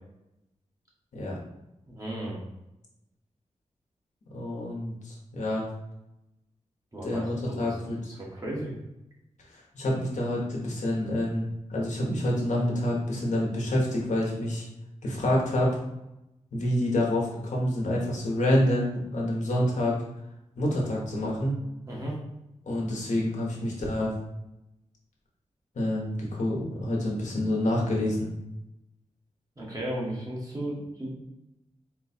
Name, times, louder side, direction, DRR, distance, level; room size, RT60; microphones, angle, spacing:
voice 1, 1.9-2.4 6.9-7.7 8.3-8.7 21.9-22.2 29.6-31.1, right 1 dB, 30° right, -4 dB, 1.4 m, -34 dB
voice 2, 4.3-5.7 7.0-8.1 9.5-14.6 15.0-15.8 16.5-20.0 20.6-21.5 22.7-24.1 25.7-28.3, left 1 dB, 85° left, -3 dB, 1.1 m, -27 dB
4.4 x 2.3 x 4.3 m, 0.90 s
wide cardioid pair, 120°, 12 cm